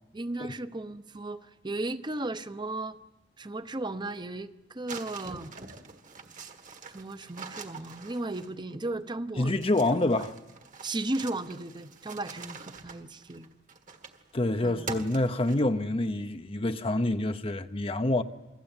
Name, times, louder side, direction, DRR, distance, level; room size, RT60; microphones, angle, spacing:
voice 1, 0.1-3.0 3.4-5.5 6.9-9.5 10.2-10.3 10.8-13.5 14.6-14.9, right 2 dB, 25° right, 0.9 m, -35 dB
sound 1, 4.9-8.8 9.6-14.3 14.9-15.9, right 5 dB, 45° right, 1.7 m, -44 dB
voice 2, 9.4-10.3 14.3-18.2, left 2 dB, 30° left, 0.8 m, -27 dB
28.5 x 21.0 x 9.0 m
head